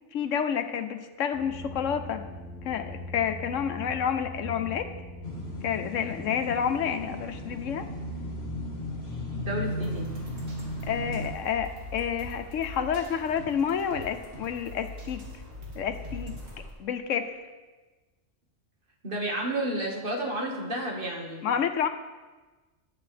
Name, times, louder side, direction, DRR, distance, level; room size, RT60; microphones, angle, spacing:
voice 1, 0.1-2.2 2.6-4.9 5.6-7.9 10.9-15.2 15.7-16.4 16.8-17.3 21.4-21.9, left 8 dB, 90° left, 8 dB, 1.1 m, -29 dB
sound 1, 1.3-14.9, right 1 dB, ahead, 3.7 m, -43 dB
sound 2, 5.2-11.3, left 1 dB, 55° left, 1.6 m, -36 dB
voice 2, 9.4-10.1 19.0-21.4, right 1 dB, 45° right, 0 dB, 1.8 m, -31 dB
sound 3, 9.7-16.7, left 1 dB, 60° right, 2.7 m, -43 dB
19.5 x 7.1 x 3.4 m, 1.2 s
omnidirectional pair, 1.3 m